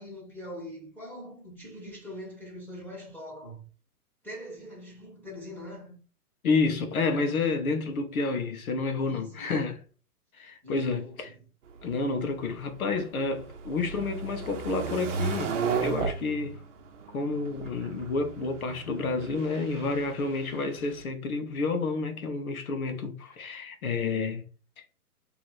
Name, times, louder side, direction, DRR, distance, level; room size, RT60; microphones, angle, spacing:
voice 1, 0.0-3.6 4.2-6.0 9.1-9.5 10.6-11.4, equal, 5° left, 1.3 m, -43 dB
voice 2, 6.4-9.8 10.4-11.3 11.8-15.5 15.8-16.6 17.1-24.4 24.8-24.9, left 3 dB, 65° left, 1.2 m, -29 dB
sound 1, 11.7-21.0, right 5 dB, 50° right, 0.9 m, -35 dB
3.2 x 3.0 x 4.2 m
hypercardioid pair, 135°, 46 cm